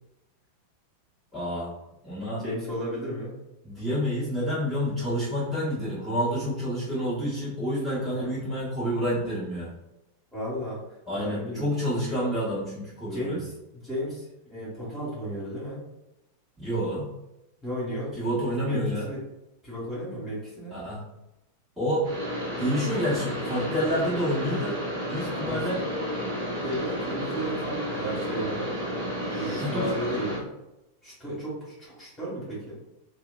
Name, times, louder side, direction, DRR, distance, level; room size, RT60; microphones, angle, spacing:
voice 1, 1.3-1.7 2.0-2.4 3.6-9.7 11.1-13.4 16.6-17.1 18.2-19.1 20.7-21.0 21.8-22.1 22.6-24.8 25.1-25.8 29.3-29.9, equal, 10° right, -11 dB, 1.2 m, -28 dB
voice 2, 2.4-3.3 8.1-8.4 10.3-10.8 11.1-11.7 13.0-15.8 17.6-18.3 18.6-19.2 19.6-20.8 25.4-25.8 26.6-28.7 29.3-30.4 31.0-32.8, right 1 dB, 15° left, -8 dB, 1.4 m, -34 dB
sound 1, 22.0-30.4, equal, 35° right, 0.8 m, -31 dB
2.7 x 2.1 x 2.3 m, 0.92 s
figure-of-eight pair, 90°, 0 cm